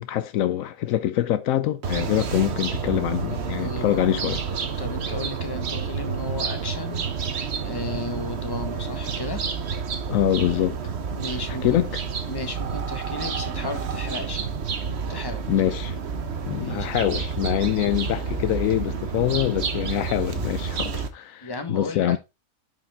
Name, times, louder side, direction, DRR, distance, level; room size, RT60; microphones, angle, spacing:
voice 1, 0.0-4.4 10.1-10.9 11.6-12.0 15.5-16.0 16.4-22.2, left 12 dB, 75° left, 1.0 m, -24 dB
sound 1, 1.8-21.1, right 6 dB, 55° right, 1.1 m, -29 dB
voice 2, 3.3-4.3 4.8-7.1 7.6-9.5 11.2-11.8 12.3-14.5 15.1-15.4 16.6-16.9 21.4-22.2, left 2 dB, 15° left, 1.3 m, -34 dB
9.8 x 5.3 x 3.4 m
omnidirectional pair, 1.5 m